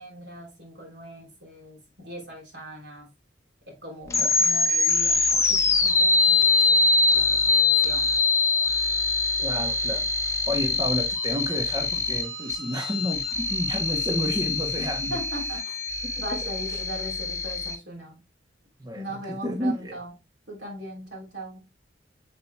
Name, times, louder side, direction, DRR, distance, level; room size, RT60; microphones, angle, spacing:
voice 1, 0.0-3.1 3.7-8.1 14.8-15.8 16.2-18.3 18.9-20.1 20.5-21.7, right 1 dB, 60° right, 3.5 m, -40 dB
sound 1, 4.1-17.8, left 3 dB, 15° left, 0.9 m, -24 dB
voice 2, 9.4-15.2 16.0-16.1 18.8-19.9, equal, 20° right, 0.8 m, -31 dB
7.4 x 7.1 x 2.2 m
head